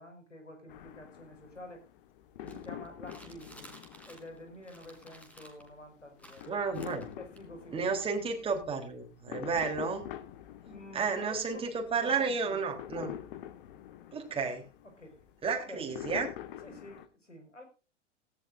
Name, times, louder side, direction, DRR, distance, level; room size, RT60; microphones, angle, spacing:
voice 1, 0.0-1.8 2.4-3.7 4.1-6.5 7.2-8.1 10.6-12.8 14.8-15.2 15.5-16.0 16.6-17.6, left 1 dB, 85° left, 5 dB, 5.3 m, -49 dB
sound 1, 0.7-17.1, left 12 dB, 50° left, 1.6 m, -46 dB
sound 2, 2.5-4.4 4.6-5.7 6.2-7.4, equal, 5° left, 3.4 m, -54 dB
voice 2, 6.5-7.1 7.7-10.0 10.9-13.1 14.1-14.7 15.4-16.3, right 5 dB, 15° right, 2 dB, 3.5 m, -32 dB
17.0 x 15.0 x 2.6 m, 0.32 s
figure-of-eight pair, 100°, 36 cm